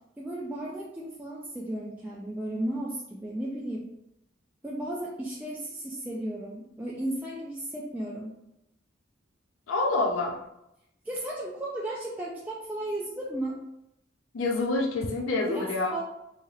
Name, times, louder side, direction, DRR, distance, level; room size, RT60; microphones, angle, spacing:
voice 1, 0.2-3.9 4.6-8.3 11.0-13.6 15.4-16.0, right 1 dB, 10° right, -5 dB, 0.3 m, -34 dB
voice 2, 9.7-10.4 14.3-15.9, left 2 dB, 90° left, 0 dB, 0.5 m, -27 dB
3.2 x 2.7 x 2.3 m, 0.84 s
head